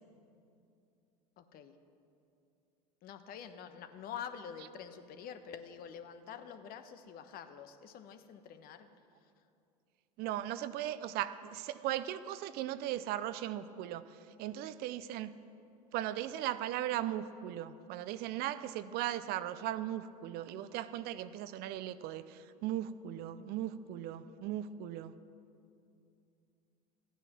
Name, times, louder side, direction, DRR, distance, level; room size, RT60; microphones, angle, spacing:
voice 1, 1.4-1.7 3.0-8.9 9.2-9.3, left 8 dB, 50° left, 9 dB, 1.0 m, -47 dB
voice 2, 10.2-15.4 15.9-25.1, right 12 dB, 50° right, 14 dB, 0.6 m, -38 dB
14.5 x 9.3 x 6.1 m, 2.6 s
hypercardioid pair, 85°, 20 cm